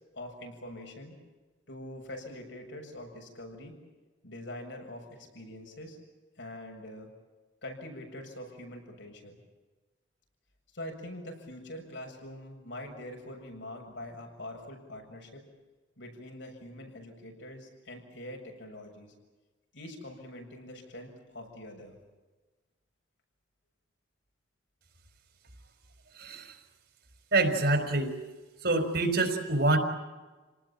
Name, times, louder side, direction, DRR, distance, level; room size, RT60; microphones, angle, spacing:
voice 1, 0.1-1.2 1.7-3.7 4.2-6.0 6.4-7.1 7.6-9.4 10.7-15.4 16.0-19.1 19.7-22.0, left 1 dB, 75° left, 2 dB, 7.3 m, -44 dB
voice 2, 26.2-26.5 27.3-28.2 28.6-29.8, right 2 dB, 55° right, 7 dB, 4.4 m, -26 dB
29.0 x 19.0 x 9.0 m, 1.2 s
head